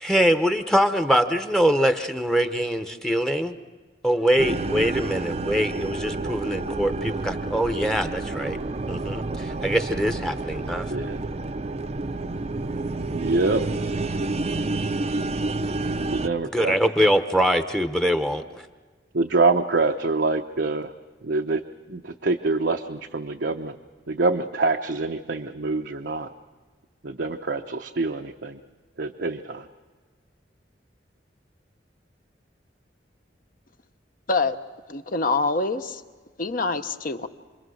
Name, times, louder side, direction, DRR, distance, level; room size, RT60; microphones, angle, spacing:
voice 1, 0.0-3.5 4.0-8.6 8.9-10.8 16.5-18.4, equal, 5° left, 8 dB, 0.9 m, -23 dB
sound 1, 4.4-16.3, right 2 dB, 35° right, 0.6 m, -29 dB
voice 2, 13.1-13.6 16.1-16.7 19.1-20.9 21.2-21.6 21.9-23.8 24.1-26.3 27.0-28.6 29.0-29.6, right 3 dB, 80° right, 4 dB, 0.8 m, -25 dB
voice 3, 34.9-36.0 36.4-37.3, left 3 dB, 50° left, 8 dB, 1.0 m, -25 dB
28.0 x 22.0 x 6.4 m, 1.4 s
head